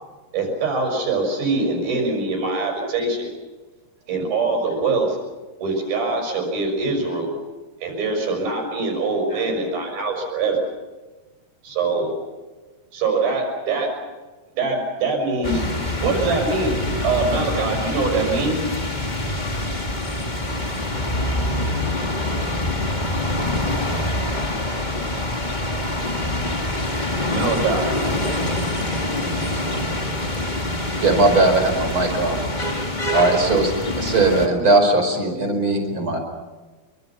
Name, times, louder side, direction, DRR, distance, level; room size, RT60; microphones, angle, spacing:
voice 1, 0.3-3.3 4.1-5.2 5.6-7.3 7.8-10.6 11.6-12.1 12.9-13.9 14.6-15.7 16.0-18.6 27.3-27.9, right 3 dB, 70° right, 3 dB, 7.8 m, -23 dB
sound 1, 15.4-34.5, left 1 dB, 15° left, 1.5 m, -25 dB
voice 2, 19.5-20.1 20.5-20.6 24.9-25.0 28.8-29.0, left 3 dB, 45° left, -2 dB, 4.5 m, -44 dB
voice 3, 31.0-32.4 33.1-33.7 34.0-36.2, right 2 dB, 30° right, 4 dB, 5.6 m, -18 dB
28.5 x 24.5 x 5.9 m, 1.2 s
omnidirectional pair, 4.4 m